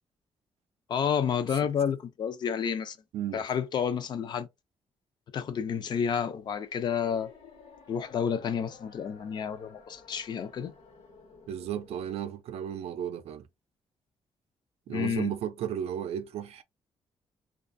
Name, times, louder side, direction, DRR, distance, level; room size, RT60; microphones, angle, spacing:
voice 1, 0.9-3.0 3.3-4.5 5.3-7.3 7.9-10.7 14.9-15.3, left 7 dB, 45° left, 0.4 m, -30 dB
sound 1, 6.3-12.2, left 4 dB, 80° left, 1.1 m, -54 dB
voice 2, 11.5-13.5 14.9-16.6, right 9 dB, 80° right, 0.4 m, -34 dB
2.5 x 2.3 x 2.5 m
wide cardioid pair, 180°, 10 cm